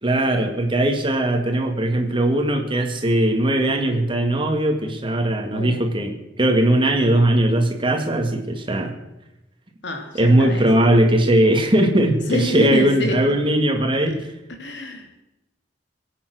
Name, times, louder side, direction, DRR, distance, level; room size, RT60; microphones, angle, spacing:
voice 1, 0.0-8.9 10.1-14.3, right 1 dB, 30° right, 4 dB, 2.2 m, -19 dB
voice 2, 9.8-10.6 12.3-13.1 14.6-15.2, equal, 75° left, 3 dB, 3.2 m, -26 dB
22.5 x 8.9 x 6.5 m, 0.93 s
head